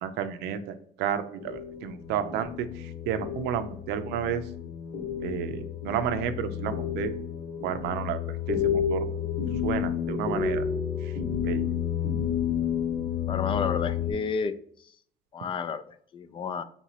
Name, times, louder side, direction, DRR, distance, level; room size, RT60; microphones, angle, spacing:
voice 1, 0.0-4.5 5.2-7.1 7.6-9.1 9.6-10.6 11.0-11.1 11.4-11.8, right 9 dB, 90° right, 10 dB, 0.5 m, -31 dB
sound 1, 1.4-14.1, left 8 dB, 60° left, 1.1 m, -31 dB
voice 2, 13.3-14.6 15.3-16.6, left 5 dB, 30° left, 12 dB, 0.3 m, -31 dB
3.6 x 3.0 x 3.9 m, 0.62 s
cardioid pair, 110°, 17 cm